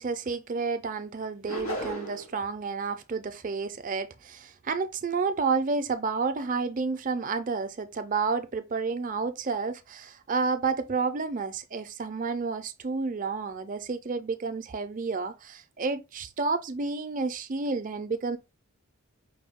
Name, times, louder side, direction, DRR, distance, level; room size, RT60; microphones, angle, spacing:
voice 1, 0.0-18.4, right 4 dB, 35° right, 0.4 m, -30 dB
sound 1, 1.5-2.4, equal, 80° left, 2.9 m, -34 dB
5.3 x 2.2 x 3.5 m
head